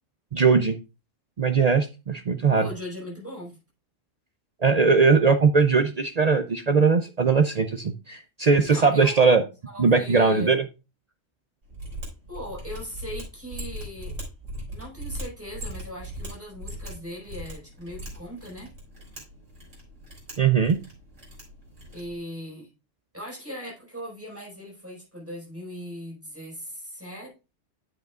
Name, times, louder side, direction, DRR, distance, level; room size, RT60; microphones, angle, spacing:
voice 1, 0.3-0.8 1.4-2.7 4.6-9.4 9.8-10.6 20.4-20.8, right 5 dB, 50° right, 8 dB, 0.4 m, -20 dB
voice 2, 2.5-3.6 8.7-9.1 9.7-10.6 12.3-14.1 14.7-18.7 21.9-22.7 23.1-27.3, equal, 10° right, -3 dB, 4.8 m, -39 dB
Mechanisms, 11.7-22.2, equal, 70° right, 4.3 m, -39 dB
9.2 x 7.8 x 2.4 m, 0.29 s
omnidirectional pair, 1.3 m